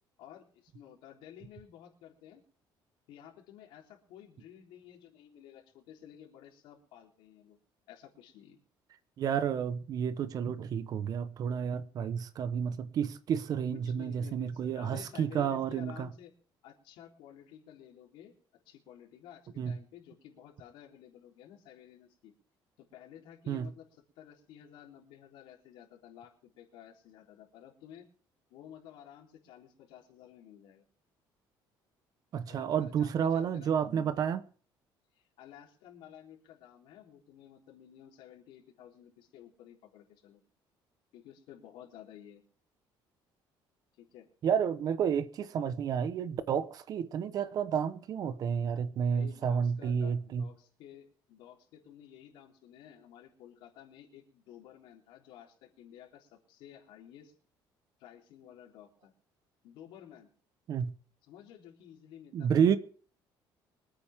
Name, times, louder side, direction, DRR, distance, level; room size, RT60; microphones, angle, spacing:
voice 1, 0.2-2.4 3.1-7.6 7.9-8.6 11.9-12.2 13.7-16.3 16.6-18.3 18.7-22.3 22.8-23.9 24.2-28.1 28.5-30.8 32.5-33.7 35.2-40.4 41.1-42.4 44.0-44.3 49.1-57.3 58.0-59.1 59.6-60.3 61.2-62.8, left 10 dB, 85° left, 3.8 m, -53 dB
voice 2, 9.2-16.1 19.6-19.8 23.5-23.7 32.3-34.4 44.4-50.4 60.7-60.9 62.3-62.8, right 7 dB, 45° right, 1.1 m, -30 dB
24.5 x 9.1 x 3.7 m
cardioid pair, 155°, 9 cm